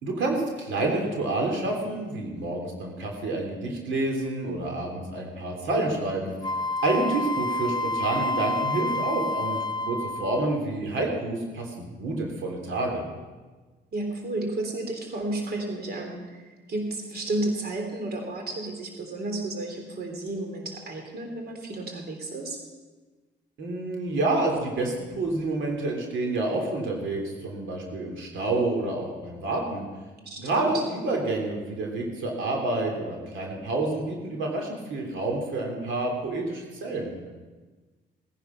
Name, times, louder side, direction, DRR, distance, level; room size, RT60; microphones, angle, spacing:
voice 1, 0.0-6.5 6.8-9.6 9.9-13.0 23.6-29.9 30.4-37.3, right 2 dB, 75° right, 1 dB, 3.2 m, -28 dB
Wind instrument woodwind instrument, 6.4-10.6, left 1 dB, 20° left, 0.7 m, -29 dB
voice 2, 6.9-7.2 13.9-22.6 30.2-30.8, right 2 dB, 50° right, 3 dB, 3.3 m, -32 dB
18.0 x 10.0 x 5.8 m, 1.3 s
cardioid pair, 90°, 20 cm